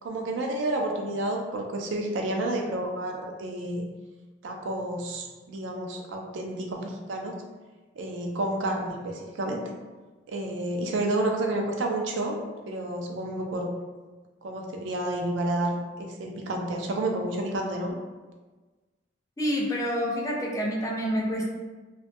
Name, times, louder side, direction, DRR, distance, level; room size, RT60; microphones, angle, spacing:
voice 1, 0.0-3.8 4.4-7.4 8.0-9.6 10.3-12.4 12.7-13.7 14.4-18.0, right 1 dB, 75° right, 2 dB, 0.4 m, -30 dB
voice 2, 19.4-21.5, equal, 20° left, -2 dB, 0.4 m, -27 dB
2.2 x 2.2 x 2.6 m, 1.3 s
head